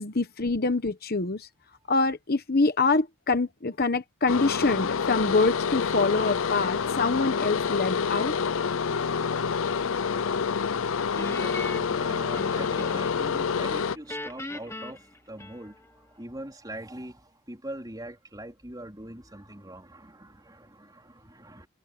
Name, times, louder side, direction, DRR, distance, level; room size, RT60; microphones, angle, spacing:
voice 1, 0.0-1.5 1.9-8.3, left 3 dB, 45° left, 1.0 m, -25 dB
sound 1, 4.3-14.0, left 6 dB, 65° left, 0.5 m, -27 dB
Guitar, 11.2-13.3 13.6-15.9, left 2 dB, 10° left, 1.2 m, -39 dB
voice 2, 11.4-21.7, right 1 dB, 15° right, 3.9 m, -42 dB
head